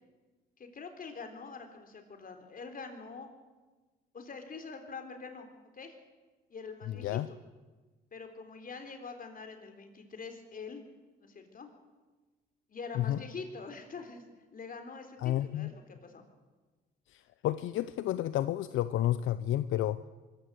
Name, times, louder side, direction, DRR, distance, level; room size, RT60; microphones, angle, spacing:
voice 1, 0.6-3.3 4.1-5.5 5.7-6.0 6.5-7.4 8.1-10.8 11.2-11.7 12.7-14.2 14.5-16.2, left 4 dB, 45° left, 6 dB, 3.8 m, -45 dB
voice 2, 6.9-7.3 13.0-13.2 15.2-15.7 17.1-20.0, left 13 dB, 80° left, 13 dB, 0.6 m, -31 dB
24.0 x 14.5 x 8.1 m, 1.3 s
cardioid pair, 90°, 20 cm